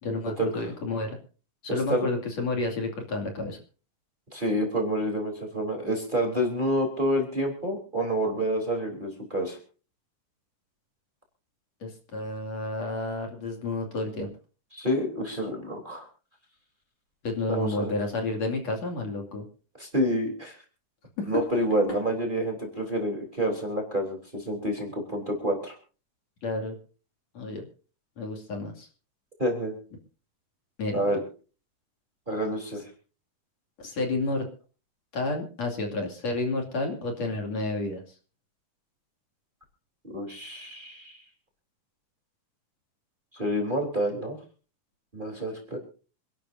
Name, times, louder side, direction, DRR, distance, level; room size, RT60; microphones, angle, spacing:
voice 1, 0.0-1.2 1.6-3.6 11.8-14.3 17.2-19.4 21.2-21.3 26.4-26.8 27.4-27.6 28.2-28.9 30.8-31.2 33.8-34.4 35.1-38.0, left 2 dB, 55° left, 2 dB, 3.6 m, -30 dB
voice 2, 1.7-2.1 4.3-9.6 14.7-16.1 17.5-17.9 19.8-20.6 21.3-25.8 29.4-29.7 30.9-31.2 32.3-32.9 40.0-41.2 43.3-44.4 45.1-45.8, equal, 15° right, 2 dB, 3.5 m, -28 dB
27.5 x 12.0 x 2.7 m, 0.37 s
omnidirectional pair, 3.8 m